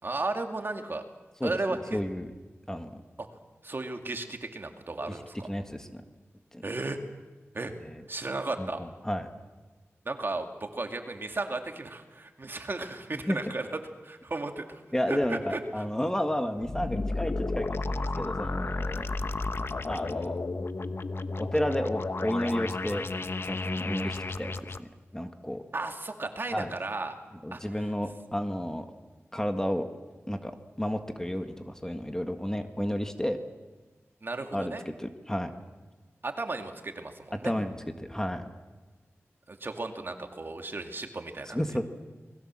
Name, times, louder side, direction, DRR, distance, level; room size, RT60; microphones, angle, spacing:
voice 1, 0.0-1.0 1.4-2.0 3.2-3.3 3.6-5.5 6.6-7.0 7.5-7.7 8.1-8.8 10.1-13.7 14.0-14.8 15.1-15.6 25.7-27.1 27.5-27.6 34.2-34.8 36.2-37.5 39.5-41.8, right 2 dB, 45° right, 5 dB, 2.4 m, -34 dB
voice 2, 1.4-2.3 2.7-2.9 5.5-5.9 6.5-6.6 7.8-8.0 8.6-9.3 13.3-13.4 14.9-19.1 19.9-20.4 21.4-23.0 23.5-25.6 26.5-26.7 27.4-28.9 29.3-29.8 30.3-30.5 30.8-33.4 34.5-34.7 35.0-35.5 37.4-38.5 41.5-41.8, equal, 10° left, 6 dB, 1.7 m, -32 dB
sound 1, 16.6-24.8, left 3 dB, 55° left, 1.0 m, -32 dB
29.0 x 21.0 x 7.6 m, 1.3 s
wide cardioid pair, 100°, 5 cm